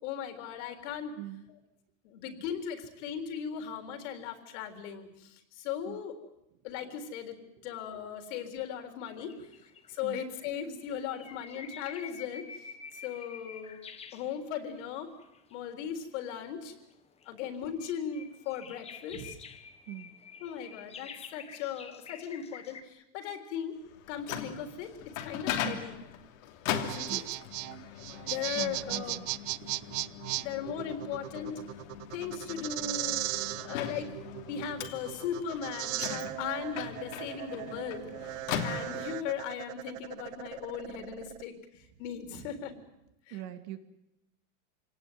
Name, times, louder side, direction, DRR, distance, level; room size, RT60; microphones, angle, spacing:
voice 1, 0.0-1.1 2.0-6.2 6.6-7.4 7.6-9.3 9.9-12.5 12.9-13.8 14.1-15.1 15.5-16.7 17.3-19.3 20.4-23.7 24.1-26.0 26.8-27.2 27.9-28.0 28.3-29.2 30.4-31.6 32.1-33.3 33.6-34.1 34.5-42.7 43.3-43.4, left 8 dB, 60° left, 7 dB, 3.8 m, -38 dB
sound 1, 9.0-10.0 10.6-14.8 15.2-15.8 16.6-22.8, left 6 dB, 15° left, 1.2 m, -48 dB
Microwave oven, 23.9-39.4, left 10 dB, 80° left, 3.0 m, -40 dB
sound 2, 26.7-41.4, right 18 dB, 70° right, 0.9 m, -37 dB
voice 2, 28.5-29.3 29.6-30.4 33.3-33.7 38.0-38.3 42.3-42.5 43.3-43.8, right 14 dB, 55° right, 9 dB, 2.2 m, -44 dB
27.0 x 18.5 x 9.4 m, 0.87 s
supercardioid pair, 160°, 40 cm